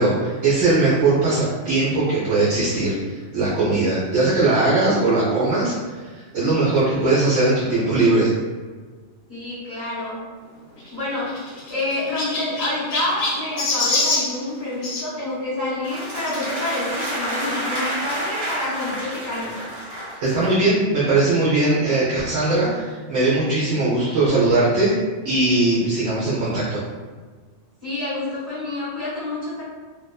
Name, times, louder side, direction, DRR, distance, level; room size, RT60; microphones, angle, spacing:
voice 1, 0.0-3.0 3.3-8.3 20.2-24.9 25.2-26.8, right 2 dB, 70° right, -8 dB, 0.9 m, -20 dB
voice 2, 9.3-10.2 10.9-11.4 11.7-19.6 27.8-29.6, left 2 dB, 15° right, -11 dB, 1.0 m, -28 dB
Chirp tweet, 10.8-15.1 16.2-16.4 17.1-17.2 17.4-17.5 18.8-18.9, left 2 dB, 85° left, 0.9 m, -26 dB
sound 1, 15.8-20.7, equal, 35° right, 0.8 m, -30 dB
2.3 x 2.3 x 2.3 m, 1.4 s
omnidirectional pair, 1.2 m